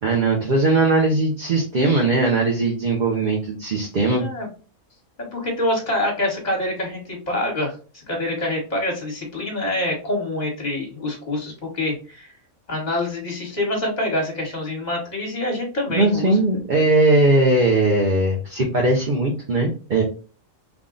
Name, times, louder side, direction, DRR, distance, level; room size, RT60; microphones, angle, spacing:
voice 1, 0.0-4.2 16.0-20.0, right 2 dB, 45° right, -1 dB, 0.7 m, -19 dB
voice 2, 5.2-12.3 12.7-16.4, left 1 dB, 30° left, 0 dB, 1.5 m, -26 dB
3.5 x 2.3 x 3.8 m, 0.36 s
omnidirectional pair, 1.5 m